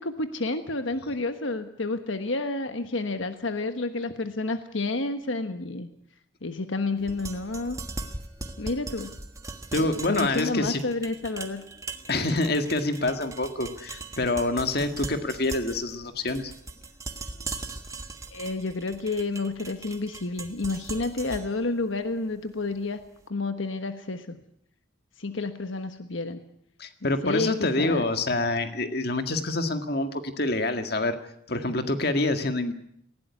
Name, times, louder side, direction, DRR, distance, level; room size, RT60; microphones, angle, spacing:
voice 1, 0.0-5.9 6.4-7.8 8.6-9.1 9.8-11.6 18.3-23.0 23.3-24.4 25.2-26.4 27.0-28.0, left 3 dB, 80° left, 8 dB, 1.3 m, -30 dB
sound 1, 7.0-23.1, right 3 dB, 15° right, 1.5 m, -40 dB
voice 2, 9.7-10.8 12.1-16.5 26.8-31.2 31.5-32.7, left 2 dB, 50° left, 7 dB, 1.9 m, -26 dB
19.5 x 16.5 x 9.7 m, 0.73 s
head